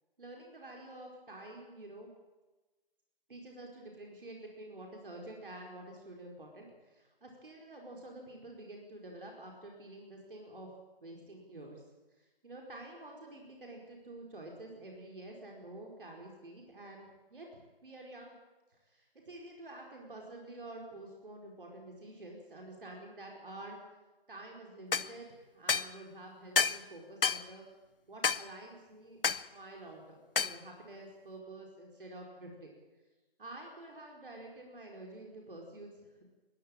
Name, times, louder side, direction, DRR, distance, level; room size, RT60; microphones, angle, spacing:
voice 1, 0.2-2.1 3.3-10.7 11.0-11.8 12.2-18.4 18.7-23.8 24.3-27.6 28.1-32.7 33.4-36.3, right 1 dB, 60° right, 0 dB, 4.7 m, -49 dB
sound 1, 24.9-25.1 25.7-25.9 26.6-26.8 27.2-27.4 28.2-28.4 29.2-29.5 30.4-30.6, left 5 dB, 65° left, 0.7 m, -29 dB
22.0 x 14.0 x 8.9 m, 1.2 s
figure-of-eight pair, 150°, 30 cm